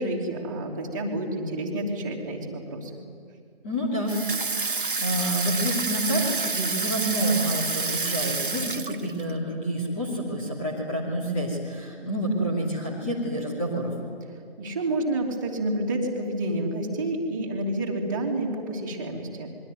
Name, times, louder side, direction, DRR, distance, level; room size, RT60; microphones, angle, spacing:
voice 1, 0.0-3.0 14.6-19.5, right 1 dB, 20° right, -2 dB, 2.9 m, -29 dB
voice 2, 3.6-13.9, right 1 dB, 10° left, -3 dB, 2.6 m, -28 dB
Water tap faucet / Sink (filling or washing), 4.1-9.3, right 4 dB, 55° right, 1.3 m, -28 dB
27.5 x 22.5 x 9.5 m, 2.3 s
figure-of-eight pair, 160°, 32 cm